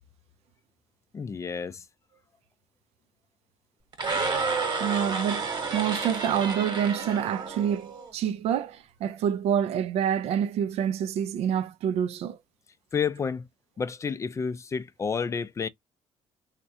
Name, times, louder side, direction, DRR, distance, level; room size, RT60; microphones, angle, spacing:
voice 1, 1.1-1.8 12.9-13.5 13.8-15.7, left 6 dB, 25° left, 0.4 m, -30 dB
sound 1, 3.9-8.1, right 4 dB, 45° right, 1.1 m, -30 dB
voice 2, 4.8-12.4, right 9 dB, 70° right, 0.4 m, -27 dB
3.5 x 2.1 x 2.7 m
cardioid pair, 115°, 11 cm